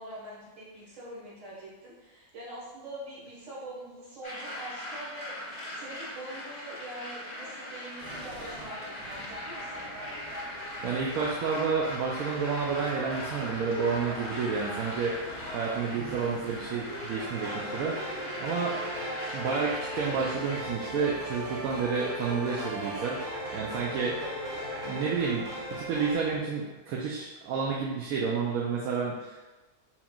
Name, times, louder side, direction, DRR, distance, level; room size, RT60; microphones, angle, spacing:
voice 1, 0.0-9.9, right 1 dB, 55° right, -6 dB, 1.7 m, -44 dB
sound 1, 4.2-20.6, left 1 dB, 40° left, 0.9 m, -40 dB
sound 2, 8.0-26.4, right 1 dB, 85° right, 1.4 m, -43 dB
voice 2, 10.8-15.1 15.5-18.8 19.3-23.2 23.5-24.2 24.8-25.4 25.7-29.4, right 5 dB, 70° right, -3 dB, 1.0 m, -30 dB
sound 3, 17.0-26.2, equal, 30° right, 1.2 m, -38 dB
4.5 x 3.8 x 2.3 m, 1.1 s
omnidirectional pair, 1.7 m